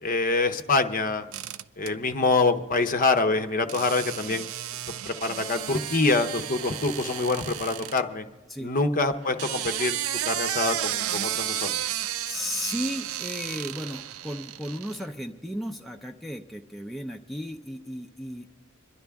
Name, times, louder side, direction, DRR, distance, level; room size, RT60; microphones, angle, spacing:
voice 1, 0.0-1.3 1.8-4.4 5.1-8.2 8.6-10.0 10.3-11.7, left 3 dB, 40° left, 8 dB, 0.7 m, -25 dB
sound 1, 1.3-1.9 3.7-8.0 9.2-15.0, right 12 dB, 70° right, 0.4 m, -33 dB
voice 2, 12.3-18.5, equal, ahead, 1 dB, 0.6 m, -34 dB
26.5 x 11.0 x 3.5 m, 1.3 s
head